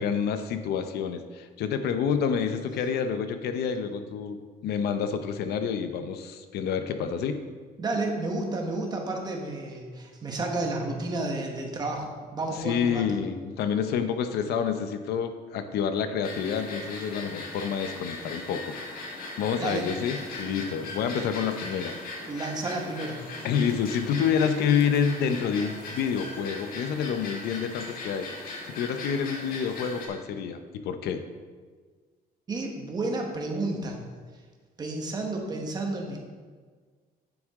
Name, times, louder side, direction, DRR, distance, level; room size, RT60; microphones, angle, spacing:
voice 1, 0.0-4.4 4.6-7.4 12.6-22.0 23.4-31.2, left 7 dB, 80° left, 9 dB, 0.7 m, -28 dB
voice 2, 7.8-13.1 19.6-19.9 22.3-23.2 32.5-34.0 34.8-36.2, right 2 dB, 25° right, 1 dB, 1.2 m, -31 dB
sound 1, 16.2-30.1, left 2 dB, 60° left, 1.7 m, -39 dB
9.5 x 7.3 x 3.6 m, 1.5 s
cardioid pair, 180°, 17 cm